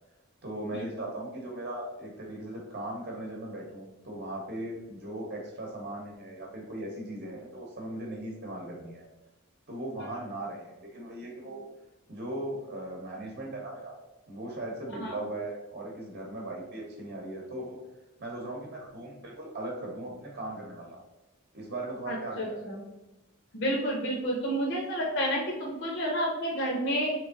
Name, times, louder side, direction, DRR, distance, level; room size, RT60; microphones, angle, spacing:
voice 1, 0.4-9.0 9.7-11.6 12.1-14.0 14.3-17.8 18.2-21.0 21.5-22.6, right 1 dB, 45° right, -2 dB, 0.8 m, -38 dB
voice 2, 22.1-22.8 23.5-27.1, equal, 55° left, -1 dB, 0.7 m, -30 dB
3.5 x 3.0 x 3.7 m, 1.0 s
head